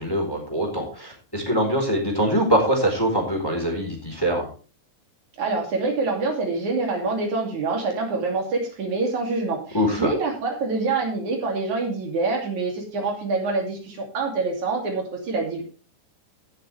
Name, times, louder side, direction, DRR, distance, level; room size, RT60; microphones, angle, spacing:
voice 1, 0.0-4.5 9.7-10.1, equal, 5° left, 1 dB, 3.9 m, -23 dB
voice 2, 5.4-15.6, right 3 dB, 65° right, 2 dB, 4.2 m, -26 dB
17.0 x 7.4 x 3.4 m, 0.36 s
omnidirectional pair, 3.6 m